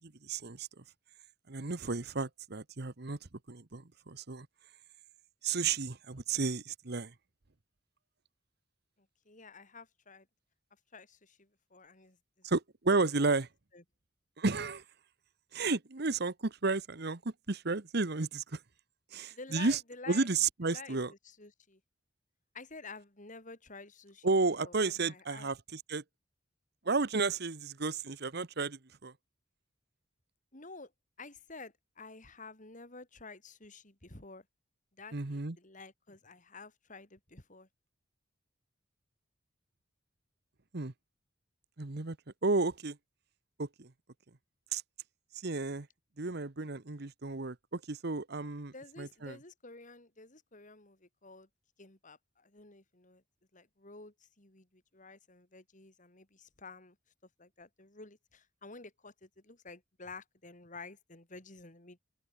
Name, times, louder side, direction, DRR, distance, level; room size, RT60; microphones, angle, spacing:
voice 1, 0.0-0.7 1.5-3.2 3.5-4.5 5.4-7.1 12.4-13.5 14.4-14.8 15.5-18.6 19.1-19.8 20.1-21.1 24.2-26.0 26.8-29.1 35.1-35.6 40.7-40.9 41.8-42.2 42.4-43.0 43.6-43.9 44.7-44.8 45.3-45.9 46.2-49.4, right 3 dB, 55° right, 1.2 m, -32 dB
voice 2, 9.0-10.3 10.9-12.5 13.3-13.4 13.7-13.8 19.3-20.3 20.6-21.8 22.5-24.3 24.6-25.5 30.5-30.9 31.2-34.4 35.0-37.7 48.7-51.5 51.8-53.2 53.5-57.0 57.4-62.0, left 3 dB, 40° left, 3.9 m, -51 dB
open air
head